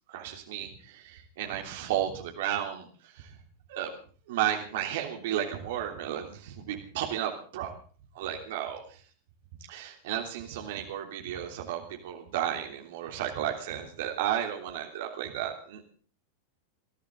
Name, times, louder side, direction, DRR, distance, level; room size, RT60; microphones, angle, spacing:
voice 1, 0.1-3.4 3.7-4.0 4.3-7.7 8.1-9.0 9.7-15.8, right 11 dB, 55° right, 2 dB, 3.2 m, -33 dB
22.5 x 15.5 x 3.8 m, 0.42 s
figure-of-eight pair, 90°, 0 cm